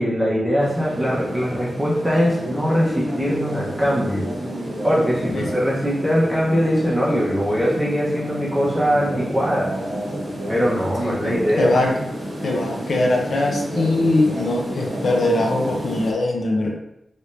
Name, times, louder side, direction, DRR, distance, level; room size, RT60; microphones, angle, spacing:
voice 1, 0.0-4.3 4.8-9.7 10.5-11.7, equal, 10° right, -6 dB, 0.8 m, -21 dB
sound 1, 0.6-16.1, equal, 50° right, 1.0 m, -30 dB
voice 2, 11.0-12.0 12.4-16.8, left 2 dB, 65° left, 1 dB, 0.6 m, -22 dB
3.2 x 2.6 x 3.1 m, 0.84 s
wide cardioid pair, 145°, 0 cm